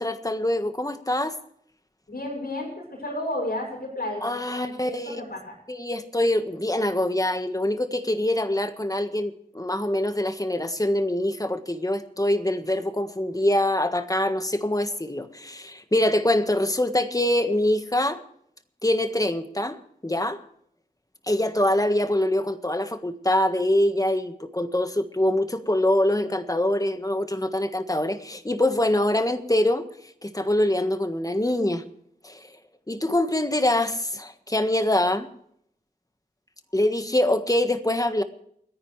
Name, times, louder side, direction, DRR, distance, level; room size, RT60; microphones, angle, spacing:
voice 1, 0.0-1.4 4.2-5.2 5.7-18.2 18.8-20.4 21.3-29.9 30.2-31.8 32.2-32.5 32.9-35.3 36.7-38.2, left 1 dB, 25° left, 9 dB, 1.5 m, -24 dB
voice 2, 2.1-5.5, left 1 dB, 75° left, -3 dB, 6.7 m, -32 dB
29.0 x 10.5 x 3.3 m, 0.68 s
wide cardioid pair, 50°, 16 cm